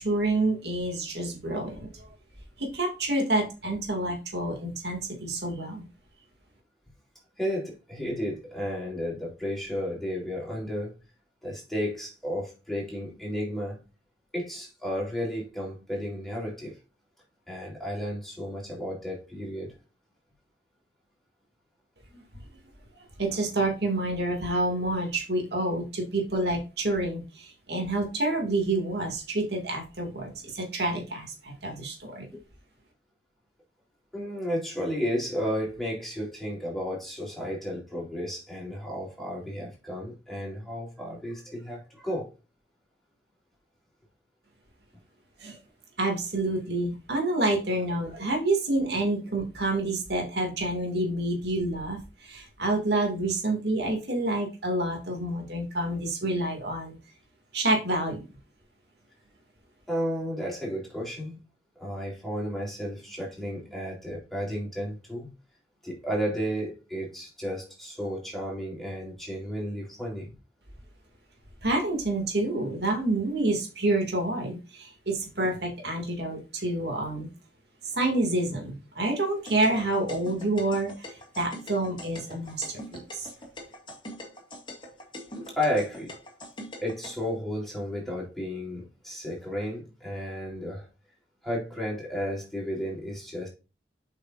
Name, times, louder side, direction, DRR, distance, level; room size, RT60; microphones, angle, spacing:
voice 1, 0.0-2.1 2.6-5.9 23.2-32.3 45.4-45.6 46.0-57.0 57.5-58.2 71.6-77.3 77.8-80.9 81.4-83.3, right 2 dB, 65° right, 2.5 m, -28 dB
voice 2, 7.4-10.9 11.4-13.8 14.3-16.8 17.5-19.8 34.1-42.3 59.9-61.4 61.8-65.3 65.8-70.3 75.4-75.6 85.5-86.1 86.8-90.9 91.4-93.5, equal, ahead, 3.7 m, -33 dB
sound 1, 79.4-87.1, left 1 dB, 25° left, 2.1 m, -43 dB
8.2 x 5.7 x 2.6 m
head